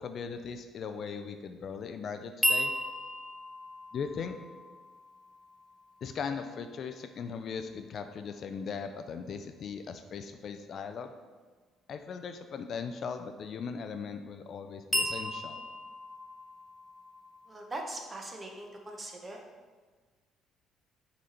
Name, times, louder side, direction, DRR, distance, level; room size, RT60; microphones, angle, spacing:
voice 1, 0.0-2.7 3.9-4.3 6.0-11.1 11.9-15.6, left 6 dB, 45° left, 7 dB, 0.4 m, -39 dB
sound 1, 2.4-6.5 14.9-18.7, equal, 5° left, 0.6 m, -35 dB
voice 2, 17.5-19.4, right 2 dB, 20° right, 2 dB, 0.9 m, -41 dB
6.4 x 4.0 x 4.3 m, 1.4 s
cardioid pair, 135°, 0 cm